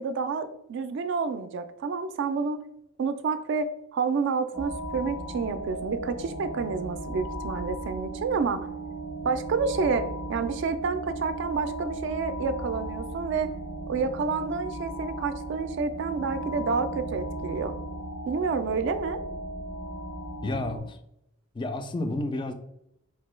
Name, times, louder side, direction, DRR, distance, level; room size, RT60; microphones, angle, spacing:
voice 1, 0.0-2.6 3.0-8.7 9.2-13.5 13.9-17.7 18.3-19.2, right 5 dB, 65° right, 0.3 m, -29 dB
sound 1, 4.5-20.8, right 1 dB, 90° left, 1.3 m, -36 dB
voice 2, 20.4-21.0 21.5-22.5, left 2 dB, 25° left, 0.3 m, -30 dB
4.4 x 2.2 x 3.1 m
head